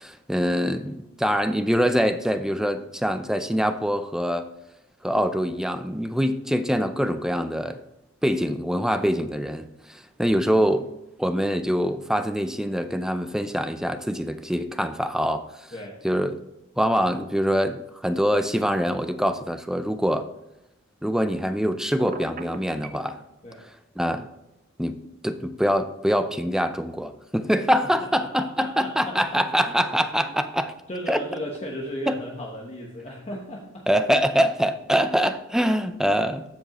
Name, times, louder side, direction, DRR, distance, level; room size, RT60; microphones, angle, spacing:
voice 1, 0.0-4.5 5.0-7.8 8.2-10.9 11.2-15.4 16.0-16.4 16.8-20.3 21.0-23.2 24.0-24.3 24.8-25.0 25.2-30.7 31.1-31.2 32.1-32.2 33.9-36.4, equal, 5° right, 9 dB, 0.5 m, -24 dB
Telephone, 22.0-23.1, right 4 dB, 45° right, 0.6 m, -37 dB
voice 2, 28.0-29.7 30.9-33.9, equal, 30° left, -2 dB, 1.0 m, -35 dB
14.5 x 5.2 x 3.0 m, 0.90 s
head